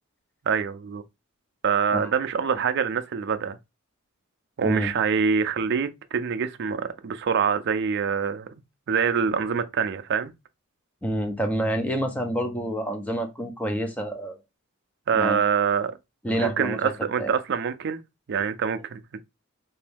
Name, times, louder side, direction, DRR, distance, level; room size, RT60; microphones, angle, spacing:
voice 1, 0.5-1.0 1.6-3.6 4.6-8.5 8.9-10.3 15.1-15.9 16.3-18.0 18.3-19.2, right 6 dB, 55° right, 0.4 m, -25 dB
voice 2, 4.6-4.9 11.0-14.4 15.1-15.4 16.2-16.9 17.2-17.3, right 1 dB, 5° left, 0.5 m, -28 dB
2.9 x 2.7 x 3.4 m
head